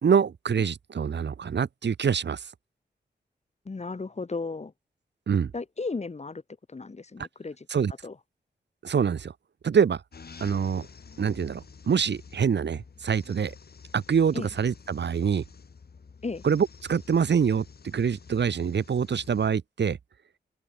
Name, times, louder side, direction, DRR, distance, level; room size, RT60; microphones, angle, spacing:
voice 1, 0.0-2.4 5.3-5.5 7.7-7.9 8.8-9.3 9.6-10.0 10.4-10.9 11.2-13.5 13.9-15.4 16.4-20.0, right 7 dB, 80° right, 1.7 m, -25 dB
voice 2, 3.7-4.7 5.5-6.4 6.7-7.7 8.0-8.2 14.3-14.5 16.2-16.4, left 3 dB, 40° left, 2.4 m, -34 dB
sound 1, 10.1-19.5, left 5 dB, 60° left, 3.9 m, -49 dB
open air
wide cardioid pair, 100°, 18 cm